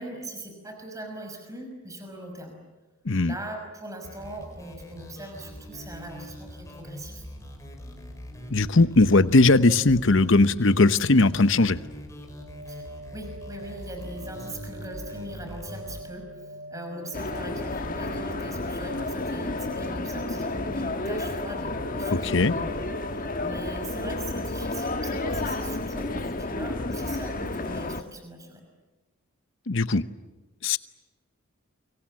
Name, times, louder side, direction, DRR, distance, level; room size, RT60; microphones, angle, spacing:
voice 1, 0.0-2.6 3.2-7.3 12.7-22.8 23.1-28.6, right 1 dB, 15° right, 4 dB, 5.7 m, -40 dB
sound 1, 4.0-16.0, equal, 15° left, 5.3 m, -43 dB
sound 2, 5.0-24.1, right 1 dB, 50° right, 4.0 m, -44 dB
voice 2, 8.5-11.8 22.1-22.5 29.7-30.0 30.6-30.8, left 3 dB, 60° left, 13 dB, 0.9 m, -19 dB
sound 3, 17.1-28.0, left 2 dB, 40° left, 1.4 m, -31 dB
30.0 x 24.5 x 7.7 m, 1.2 s
head